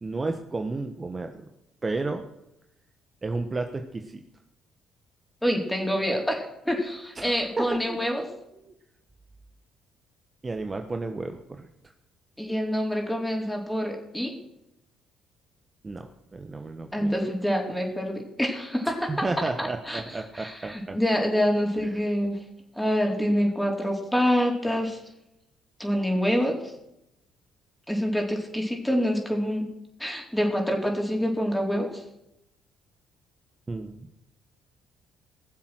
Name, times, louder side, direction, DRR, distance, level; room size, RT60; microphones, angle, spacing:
voice 1, 0.0-1.3 1.8-2.2 3.2-4.2 7.2-8.0 8.6-8.7 10.4-11.7 15.8-17.1 18.9-21.0 21.8-21.9 33.7-34.0, right 3 dB, 30° right, 6 dB, 1.2 m, -32 dB
voice 2, 5.4-8.3 12.4-14.4 16.9-19.3 19.6-22.4 22.8-25.0 25.8-26.6 27.9-29.7 30.0-32.0, equal, 5° left, 1 dB, 4.3 m, -26 dB
19.5 x 7.4 x 6.3 m, 0.85 s
hypercardioid pair, 50°, 0 cm